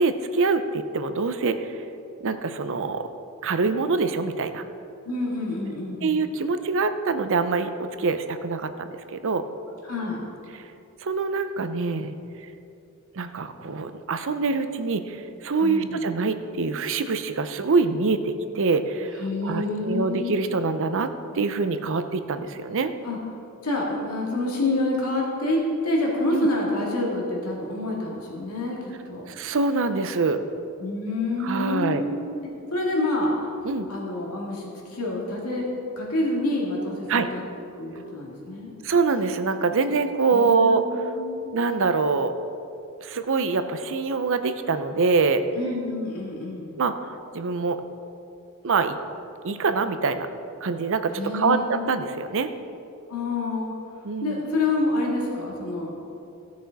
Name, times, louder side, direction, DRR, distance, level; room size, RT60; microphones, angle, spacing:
voice 1, 0.0-1.7 2.2-3.1 3.4-4.6 6.0-9.5 10.5-10.6 11.0-12.1 13.1-22.9 26.3-26.5 29.3-30.4 31.4-32.0 33.6-33.9 37.1-37.3 38.8-40.8 41.5-42.3 43.0-45.4 46.8-46.9 47.3-47.8 48.6-49.0 49.4-50.3 50.6-52.5 54.0-54.4, right 4 dB, 60° right, 10 dB, 0.6 m, -25 dB
voice 2, 5.0-6.2 9.8-10.2 15.6-16.0 19.2-20.7 23.0-23.2 23.6-28.8 29.1-29.3 30.8-32.2 32.7-33.3 33.9-35.7 36.0-37.4 37.8-38.7 40.3-41.5 45.5-46.8 51.2-51.9 53.1-53.7 54.2-55.9, left 2 dB, 80° left, -3 dB, 2.2 m, -27 dB
16.0 x 6.3 x 4.1 m, 2.7 s
head